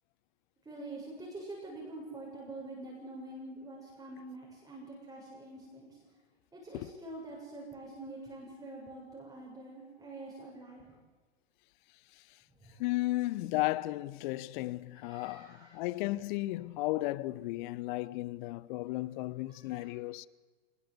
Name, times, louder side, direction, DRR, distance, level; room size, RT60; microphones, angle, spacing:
voice 1, 0.6-6.0 6.5-11.0 12.6-12.8 15.0-15.8 19.5-19.9, right 2 dB, 10° right, 7.4 m, -46 dB
voice 2, 12.8-20.3, left 18 dB, 45° left, 1.0 m, -34 dB
26.0 x 20.0 x 8.2 m
figure-of-eight pair, 100°, 33 cm